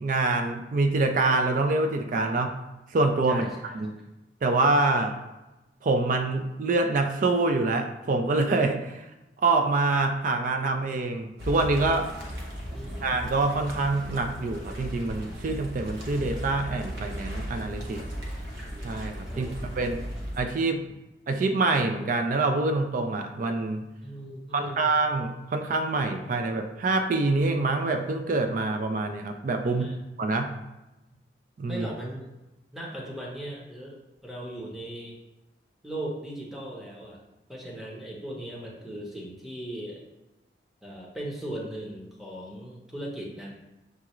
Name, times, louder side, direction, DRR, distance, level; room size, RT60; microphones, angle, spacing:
voice 1, 0.0-2.6 2.9-3.4 3.7-3.9 4.4-5.1 5.8-9.0 9.4-12.1 13.0-18.0 18.8-19.5 19.8-20.0 20.4-20.8 21.3-23.9 24.5-29.9 30.2-30.5 31.6-31.9, right 3 dB, 50° right, 5 dB, 0.4 m, -25 dB
voice 2, 3.3-3.8 4.9-5.1 12.7-13.1 19.3-20.0 24.0-24.9 29.7-30.0 31.7-32.3 32.7-35.2 35.8-37.2 37.5-40.0 40.8-43.5, right 1 dB, ahead, -4 dB, 0.8 m, -38 dB
sound 1, 11.4-20.4, equal, 75° right, 0.9 m, -36 dB
6.6 x 2.4 x 3.0 m, 1.0 s
head